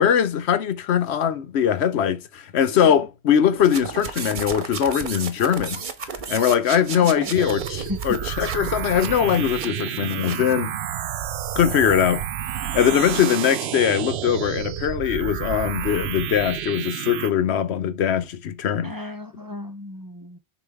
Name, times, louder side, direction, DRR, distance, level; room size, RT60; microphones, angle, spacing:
voice 1, 0.0-5.8 6.3-10.7 11.6-12.2 12.7-18.9, left 9 dB, 80° left, 1.0 m, -21 dB
voice 2, 2.7-3.1 4.9-5.1 6.9-7.3 7.9-8.2 18.8-20.4, left 1 dB, 20° right, 0.8 m, -35 dB
sound 1, 3.6-10.6, right 5 dB, 50° right, 1.0 m, -34 dB
sound 2, 7.3-17.3, right 10 dB, 80° right, 0.8 m, -30 dB
6.6 x 4.8 x 3.5 m
omnidirectional pair, 1.1 m